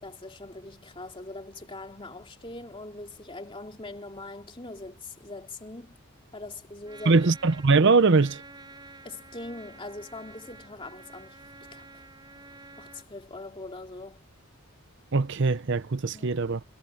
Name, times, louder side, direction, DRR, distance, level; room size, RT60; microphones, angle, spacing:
voice 1, 0.0-6.0 6.3-7.3 9.0-12.0 12.8-14.2 16.1-16.4, left 2 dB, 25° left, 2.6 m, -42 dB
Trumpet, 6.8-13.1, right 3 dB, 20° right, 6.2 m, -49 dB
voice 2, 7.1-8.4 15.1-16.6, right 4 dB, 55° right, 0.7 m, -21 dB
head